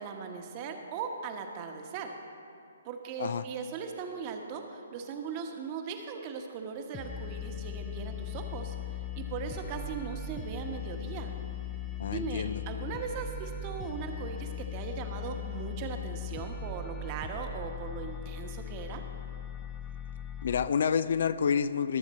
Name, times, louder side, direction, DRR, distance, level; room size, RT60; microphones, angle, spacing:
voice 1, 0.0-2.1 2.8-8.7 9.2-11.3 12.1-19.0, right 6 dB, 35° right, 4 dB, 1.2 m, -39 dB
sound 1, 6.9-20.7, left 6 dB, 15° left, 0.7 m, -39 dB
voice 2, 12.0-12.6 20.4-22.0, left 7 dB, 60° left, 15 dB, 0.3 m, -28 dB
20.0 x 7.2 x 4.2 m, 2.6 s
figure-of-eight pair, 135°, 0 cm